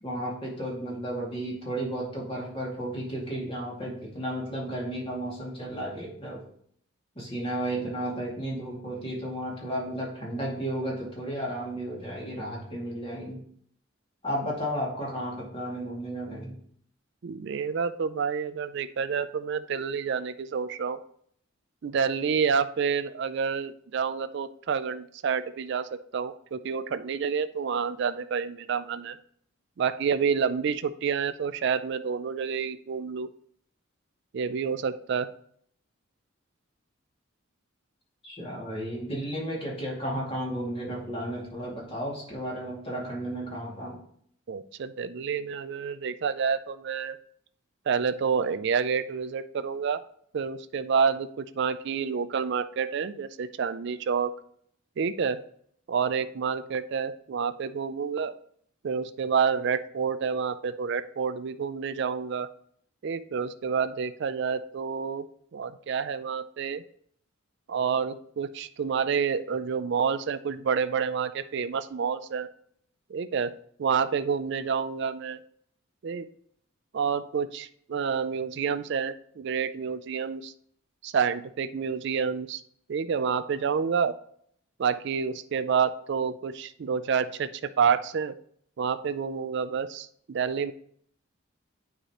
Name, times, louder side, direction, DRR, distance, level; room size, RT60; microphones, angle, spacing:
voice 1, 0.0-6.4 7.2-13.4 14.2-16.6 38.2-44.0, right 1 dB, 25° left, -4 dB, 2.3 m, -33 dB
voice 2, 17.2-21.0 21.8-29.2 29.8-33.3 34.3-35.3 44.5-47.2 47.9-50.0 50.3-54.3 55.0-55.4 55.9-58.4 58.8-62.5 63.0-65.3 65.5-66.8 67.7-72.5 73.1-75.4 76.0-76.3 76.9-80.5 81.0-82.6 82.9-84.1 84.8-87.5 87.8-88.3 88.8-90.7, right 6 dB, 55° right, 12 dB, 0.4 m, -28 dB
8.8 x 4.8 x 3.0 m, 0.64 s
head